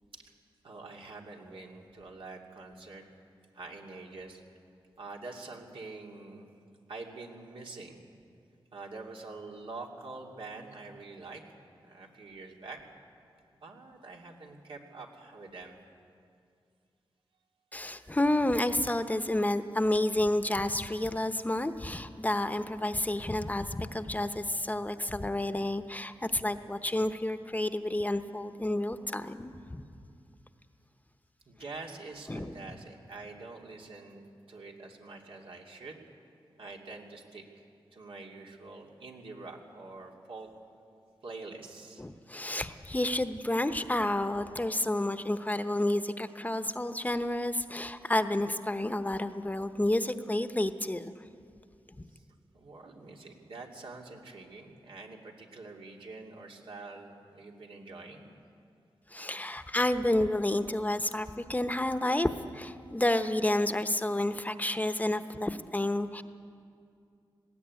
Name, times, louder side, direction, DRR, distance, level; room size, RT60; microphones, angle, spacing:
voice 1, 0.6-3.0 3.5-4.4 5.0-6.5 6.9-8.0 8.7-11.4 11.8-12.8 13.6-15.8 31.5-36.0 36.6-37.4 37.9-40.5 41.2-42.0 52.1-52.3 52.5-58.3, right 3 dB, 80° right, 0 dB, 2.7 m, -46 dB
voice 2, 17.7-29.8 32.3-32.6 42.0-51.1 52.0-52.1 59.1-62.3 62.5-66.2, left 1 dB, 20° left, 9 dB, 0.9 m, -30 dB
19.5 x 16.0 x 9.6 m, 2.4 s
cardioid pair, 70°, 9 cm